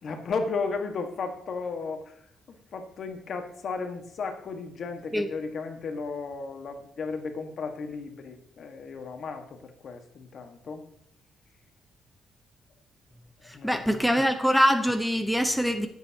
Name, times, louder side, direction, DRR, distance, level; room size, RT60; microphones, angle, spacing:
voice 1, 0.0-10.8 13.5-14.1, left 4 dB, 55° left, 5 dB, 1.7 m, -35 dB
voice 2, 13.5-15.9, equal, ahead, 8 dB, 0.9 m, -24 dB
17.0 x 8.0 x 2.9 m, 0.70 s
cardioid pair, 90°, 0 cm